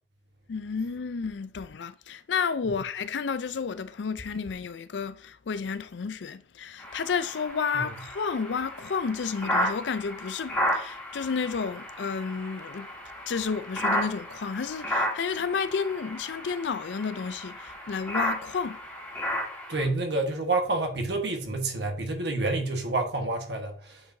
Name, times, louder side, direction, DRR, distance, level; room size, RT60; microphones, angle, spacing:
voice 1, 0.5-12.9 13.3-18.8, left 5 dB, 85° left, 0.5 m, -31 dB
sound 1, 6.8-19.8, equal, 10° left, 2.6 m, -33 dB
voice 2, 19.7-24.0, right 2 dB, 70° right, 1.4 m, -28 dB
8.7 x 4.7 x 2.7 m
head